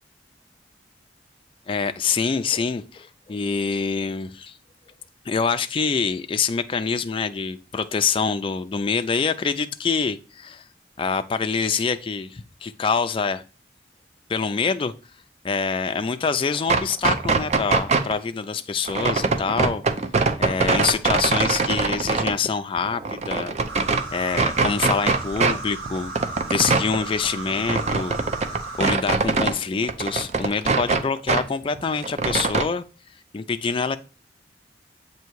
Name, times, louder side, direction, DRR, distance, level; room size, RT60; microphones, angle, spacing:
voice 1, 1.7-4.6 5.3-10.6 11.0-13.4 14.3-14.9 15.4-19.8 20.4-23.6 24.1-26.1 26.5-28.2 28.5-32.8 33.3-34.0, left 5 dB, 30° left, 8 dB, 0.4 m, -25 dB
sound 1, 16.5-18.1 18.9-22.3 22.8-24.0 24.3-25.6 25.9-29.6 29.8-31.4 31.8-32.7, right 4 dB, 40° right, 0.5 m, -23 dB
sound 2, 23.7-28.9, right 3 dB, 90° right, 1.8 m, -35 dB
8.0 x 2.8 x 4.5 m, 0.33 s
head